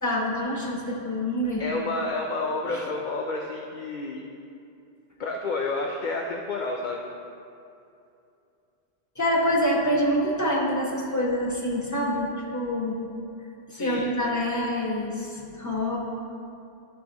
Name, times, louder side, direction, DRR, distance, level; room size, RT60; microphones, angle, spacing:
voice 1, 0.0-1.6 2.7-2.8 9.2-13.0 13.7-16.0, equal, 15° left, -3 dB, 1.0 m, -26 dB
voice 2, 1.6-4.2 5.2-7.1 13.7-14.1, left 3 dB, 50° left, 0 dB, 0.6 m, -30 dB
12.0 x 5.3 x 2.9 m, 2.6 s
omnidirectional pair, 1.2 m